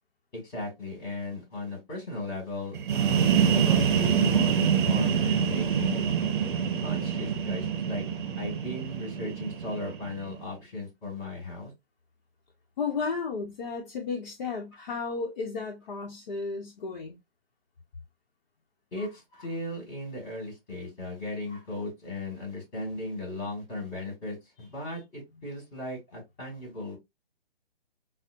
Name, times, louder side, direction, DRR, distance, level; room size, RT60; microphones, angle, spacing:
voice 1, 0.3-6.1 6.8-8.0 8.4-11.7 18.9-27.0, left 2 dB, 20° left, 2.0 m, -37 dB
sound 1, 2.7-10.4, right 7 dB, 55° right, 0.7 m, -26 dB
voice 2, 8.0-8.5 12.8-17.2, left 4 dB, 50° left, 0.9 m, -34 dB
5.4 x 2.1 x 2.5 m
hypercardioid pair, 155°, 30 cm